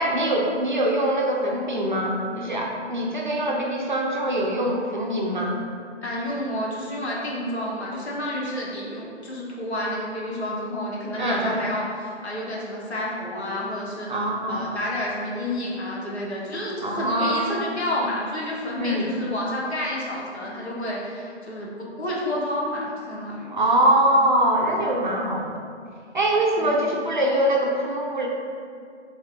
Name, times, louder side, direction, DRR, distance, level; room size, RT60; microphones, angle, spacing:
voice 1, 0.0-5.6 11.2-11.6 14.1-14.7 16.8-17.4 18.8-19.1 23.5-25.5 26.1-28.3, right 1 dB, 45° right, -1 dB, 0.5 m, -23 dB
voice 2, 6.0-14.1 14.5-23.5 26.6-26.9, left 1 dB, 65° left, -4 dB, 1.2 m, -30 dB
5.2 x 3.6 x 2.5 m, 2.2 s
hypercardioid pair, 170°, 35 cm